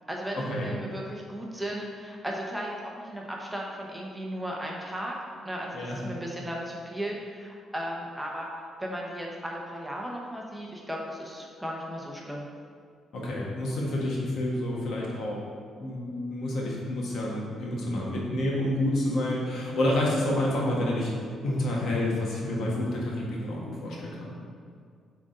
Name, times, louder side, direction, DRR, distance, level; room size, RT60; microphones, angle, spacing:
voice 1, 0.1-5.1 5.4-8.5 8.8-12.5, equal, 5° right, -2 dB, 1.0 m, -36 dB
voice 2, 13.1-15.4 15.8-21.1 21.4-24.4, left 1 dB, 65° left, -3 dB, 1.6 m, -29 dB
7.7 x 3.9 x 3.9 m, 2.1 s
cardioid pair, 90°, 0 cm